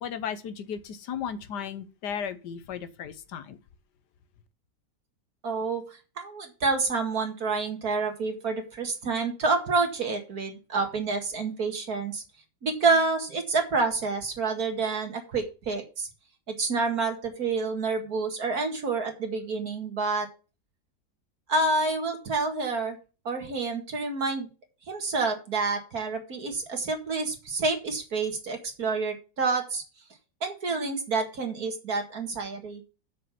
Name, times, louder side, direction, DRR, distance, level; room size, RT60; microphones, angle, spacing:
voice 1, 0.0-3.6, left 7 dB, 80° left, 1.5 m, -35 dB
voice 2, 5.4-12.2 12.6-16.1 16.5-20.3 21.5-23.0 23.3-24.5 24.9-29.8 30.4-32.8, right 3 dB, 60° right, 2.4 m, -28 dB
7.7 x 6.6 x 5.7 m
omnidirectional pair, 1.8 m